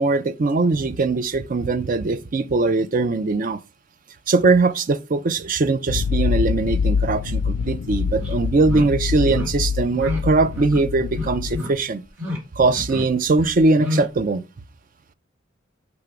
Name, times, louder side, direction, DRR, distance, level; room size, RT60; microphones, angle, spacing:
voice 1, 0.0-3.6 4.3-12.0 12.6-14.4, right 3 dB, 45° right, 0.5 m, -21 dB
sound 1, 5.9-11.6, left 5 dB, 80° left, 0.3 m, -25 dB
sound 2, 7.6-7.7 8.1-8.3 8.6-8.8 9.2-9.5 9.9-10.2 10.5-10.8 11.1-11.7 12.1-12.4 12.6-13.0 13.4-14.1, left 2 dB, 90° right, 3.0 m, -29 dB
5.9 x 3.4 x 5.0 m
head